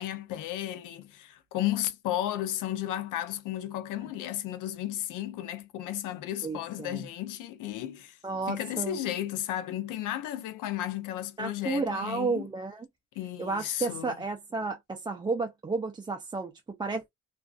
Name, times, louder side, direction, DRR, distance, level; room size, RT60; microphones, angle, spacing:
voice 1, 0.0-8.2 8.5-12.5 13.2-14.2, left 13 dB, 90° left, 0.5 m, -34 dB
voice 2, 6.4-7.1 8.2-9.0 11.4-12.9 13.4-17.1, right 3 dB, 15° right, 0.3 m, -32 dB
2.5 x 2.3 x 2.3 m
cardioid pair, 90°, 30 cm